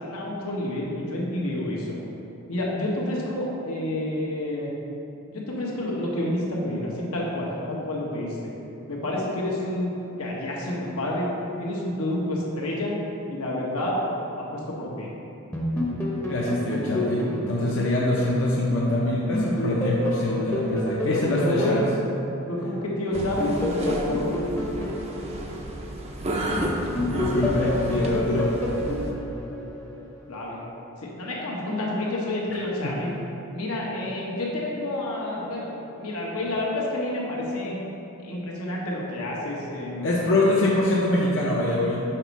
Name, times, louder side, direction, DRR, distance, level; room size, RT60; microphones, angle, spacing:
voice 1, 0.0-2.0 2.5-4.7 5.3-8.5 8.9-11.3 11.6-12.9 13.3-14.0 14.4-15.1 21.1-21.8 22.5-24.4 30.3-30.6 31.1-33.1 33.5-37.8 38.2-40.1, left 1 dB, 85° left, -4 dB, 1.2 m, -29 dB
sound 1, 15.5-18.9 19.3-22.6 23.1-26.5 26.9-30.2, left 1 dB, 10° left, 0.6 m, -29 dB
voice 2, 16.3-21.8 26.4-26.7 27.0-28.5 32.8-32.9 40.0-42.0, left 1 dB, 60° left, -5 dB, 0.6 m, -24 dB
sound 2, 23.1-29.1, right 1 dB, 30° right, 0.4 m, -32 dB
5.8 x 4.1 x 4.6 m, 3.0 s
head